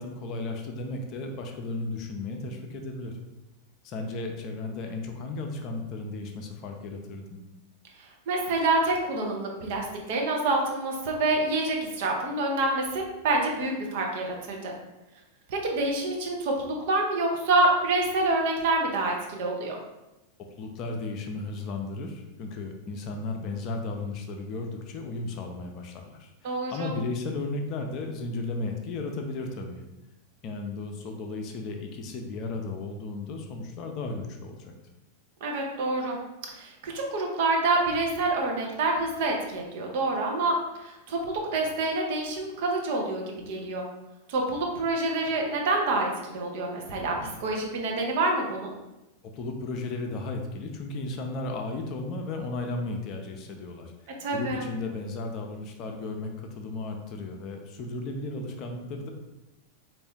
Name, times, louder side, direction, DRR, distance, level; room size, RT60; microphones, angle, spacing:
voice 1, 0.0-3.1 3.8-7.4 20.6-29.8 30.4-34.7 49.3-53.9 54.3-59.1, left 3 dB, 40° left, 3 dB, 0.6 m, -34 dB
voice 2, 8.0-14.7 15.5-19.8 26.4-26.9 35.4-36.2 36.5-41.2 41.5-43.8 44.3-47.1 47.4-48.7 54.2-54.7, right 2 dB, 50° right, 0 dB, 0.8 m, -27 dB
4.3 x 2.6 x 3.5 m, 0.99 s
figure-of-eight pair, 90°, 0 cm